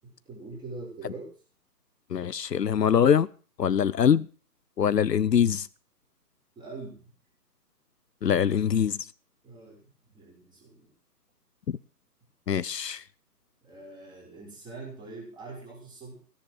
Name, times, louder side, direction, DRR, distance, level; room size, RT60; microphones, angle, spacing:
voice 1, 0.0-1.3 6.6-7.1 9.4-10.9 13.6-16.1, right 3 dB, 10° right, 6.0 m, -43 dB
voice 2, 2.1-3.3 3.6-4.3 4.8-5.7 8.2-9.0 11.7-11.8 12.5-13.0, left 8 dB, 75° left, 0.8 m, -23 dB
16.0 x 10.5 x 6.2 m
figure-of-eight pair, 145°, 49 cm